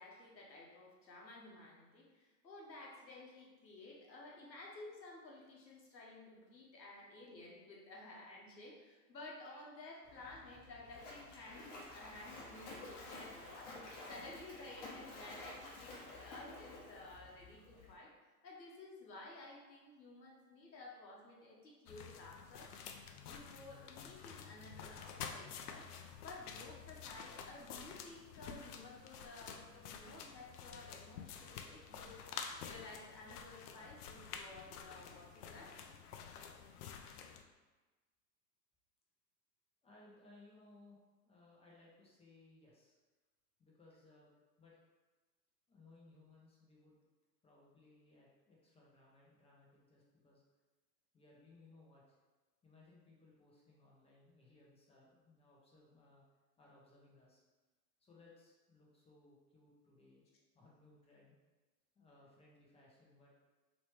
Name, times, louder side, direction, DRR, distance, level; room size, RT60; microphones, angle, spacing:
voice 1, 0.0-18.1 18.4-22.7 23.2-25.9 26.2-35.8, left 2 dB, 90° left, -2 dB, 1.0 m, -54 dB
Splash splatter, 10.0-17.9, left 2 dB, 40° left, 1.1 m, -52 dB
sound 1, 21.9-37.4, left 7 dB, 65° left, 0.6 m, -50 dB
voice 2, 39.8-43.0 43.6-44.3 44.6-44.8 45.7-47.0 47.4-50.4 51.1-52.2 52.6-56.2 56.6-57.4 58.0-60.2 60.5-61.3 61.9-63.3, left 2 dB, 10° left, -4 dB, 0.7 m, -64 dB
3.1 x 3.0 x 3.1 m, 1.2 s
hypercardioid pair, 100°, 50 cm